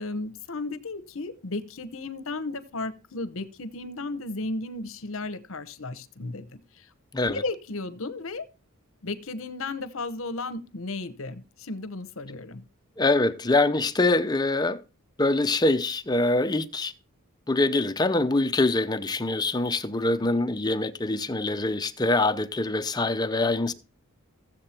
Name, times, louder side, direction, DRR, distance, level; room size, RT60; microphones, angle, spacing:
voice 1, 0.0-6.9 7.2-8.4 9.0-12.6, left 2 dB, 65° left, 1.0 m, -34 dB
voice 2, 13.0-14.8 15.2-16.9 17.5-23.7, left 2 dB, 20° left, 0.6 m, -24 dB
15.0 x 7.6 x 4.4 m
head